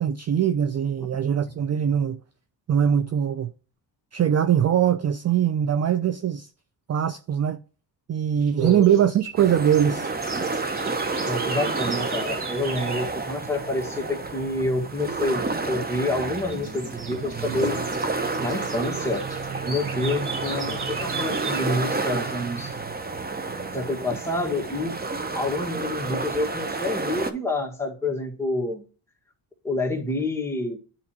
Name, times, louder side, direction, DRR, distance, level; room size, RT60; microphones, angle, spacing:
voice 1, 0.0-2.2 2.7-3.5 4.1-6.5 6.9-7.6 8.1-10.1, right 9 dB, 35° right, 0.4 m, -22 dB
sound 1, 8.4-13.1 15.4-15.7 16.2-21.8, right 4 dB, 55° right, 2.7 m, -39 dB
voice 2, 8.6-8.9 11.2-17.9 18.4-19.3 19.6-22.7 23.7-25.0 25.3-28.8 29.6-30.8, left 2 dB, 5° left, 1.6 m, -28 dB
sound 2, 9.4-27.3, right 3 dB, 20° right, 0.8 m, -30 dB
9.6 x 4.3 x 2.9 m
cardioid pair, 90°, 47 cm